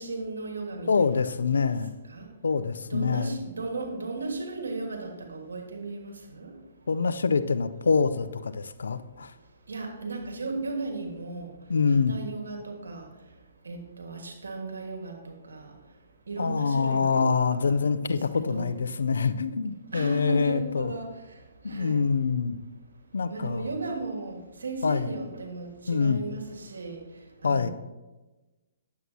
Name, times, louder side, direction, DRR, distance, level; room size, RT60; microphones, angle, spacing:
voice 1, 0.0-1.7 2.1-2.2 2.9-6.5 9.7-11.5 11.9-13.0 13.6-15.1 15.5-15.6 16.3-17.5 18.1-18.2 18.5-18.7 19.9-21.1 21.7-22.0 23.3-26.4 26.7-27.0 27.4-27.7, right 3 dB, 85° right, 3 dB, 1.6 m, -35 dB
voice 2, 0.9-2.0 2.4-3.4 6.9-9.3 11.7-12.2 16.4-20.9 21.6-22.6 23.1-23.7 24.8-25.1 25.9-26.2 27.4-27.7, left 5 dB, 80° left, 13 dB, 0.5 m, -25 dB
9.3 x 7.7 x 2.8 m, 1.1 s
hypercardioid pair, 140°, 0 cm